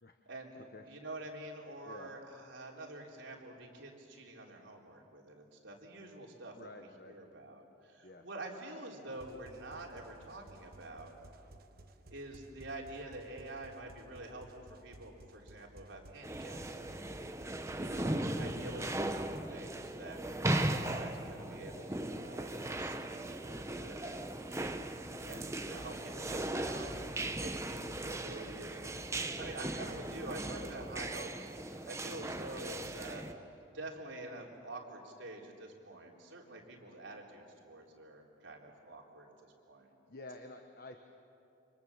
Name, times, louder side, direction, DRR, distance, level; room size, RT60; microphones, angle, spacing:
voice 1, 0.2-11.1 12.1-16.8 17.8-33.5 33.7-39.3 39.7-39.9, right 2 dB, 75° right, -1 dB, 3.8 m, -47 dB
voice 2, 6.5-7.2 8.0-8.3 17.8-18.3 30.4-30.6 40.1-41.0, left 2 dB, 50° left, 4 dB, 1.2 m, -50 dB
sound 1, 9.1-19.5, right 1 dB, 50° right, 1.2 m, -57 dB
sound 2, 16.2-33.3, right 1 dB, 15° right, 0.9 m, -38 dB
29.0 x 25.5 x 7.3 m, 2.8 s
head